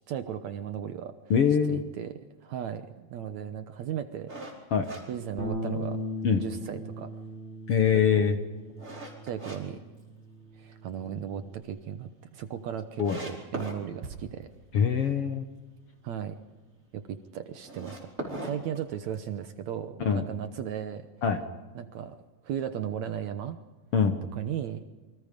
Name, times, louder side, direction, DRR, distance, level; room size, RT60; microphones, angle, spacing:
voice 1, 0.1-1.1 1.7-4.4 5.1-6.0 6.4-7.1 7.9-8.3 9.2-9.8 10.6-14.5 16.0-16.4 16.9-21.1 21.8-23.6 24.4-24.9, right 9 dB, 70° right, 9 dB, 2.0 m, -36 dB
voice 2, 1.3-1.8 4.7-4.9 6.2-6.4 7.7-8.4 13.0-13.2 14.7-15.5 20.0-20.3 21.2-21.4 23.9-24.2, left 7 dB, 55° left, 6 dB, 1.8 m, -23 dB
sound 1, 4.3-6.0 6.4-6.5 7.0-9.6 10.0-10.7 11.1-11.2 11.5-11.6 11.8-11.9 12.5-12.6 13.0-13.8 17.5-19.4, right 1 dB, 20° right, 5.1 m, -40 dB
Bass guitar, 5.4-11.6, left 1 dB, 20° left, 4.2 m, -39 dB
sound 2, 14.0-17.7 17.9-18.1, right 4 dB, 50° right, 3.5 m, -50 dB
28.0 x 24.5 x 5.3 m, 1.2 s
omnidirectional pair, 4.0 m